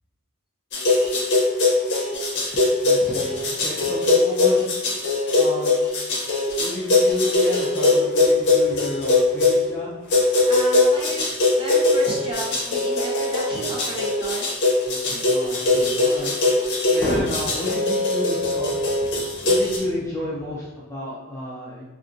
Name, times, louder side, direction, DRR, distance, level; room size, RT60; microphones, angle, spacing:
sound 1, 0.7-9.6 10.1-19.8, left 2 dB, 55° left, 0.6 m, -21 dB
voice 1, 2.8-4.7 5.3-5.8 6.5-9.9 14.8-16.3 16.9-21.8, left 1 dB, 10° left, -6 dB, 0.3 m, -31 dB
voice 2, 10.5-11.2 11.6-14.5, right 1 dB, 25° right, -5 dB, 0.7 m, -33 dB
2.8 x 2.4 x 2.5 m, 1.2 s
head